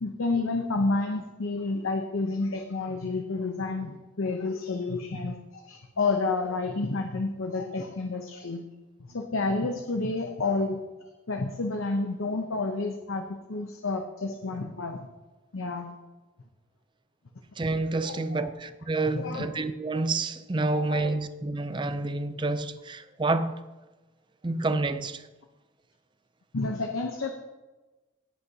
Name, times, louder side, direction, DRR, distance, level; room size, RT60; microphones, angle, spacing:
voice 1, 0.0-8.6 9.0-10.8 11.3-15.1 15.5-16.0 18.0-18.5 19.1-19.5 20.6-21.1 26.5-27.3, left 3 dB, 85° left, 0.8 m, -30 dB
voice 2, 17.6-23.5 24.4-25.3, right 2 dB, 25° right, 0.5 m, -28 dB
17.5 x 8.2 x 2.9 m
head